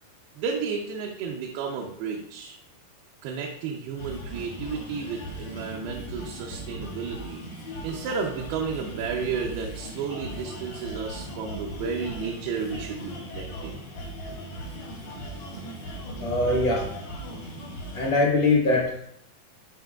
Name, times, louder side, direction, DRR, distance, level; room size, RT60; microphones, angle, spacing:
voice 1, 0.4-2.6 3.2-7.4 7.8-13.8, right 5 dB, 85° right, 0 dB, 2.7 m, -32 dB
sound 1, 4.0-18.1, equal, 85° left, 4.2 m, -38 dB
voice 2, 16.2-16.9 17.9-19.0, left 2 dB, 60° left, -2 dB, 1.8 m, -22 dB
11.5 x 5.4 x 2.3 m, 0.74 s
omnidirectional pair, 4.4 m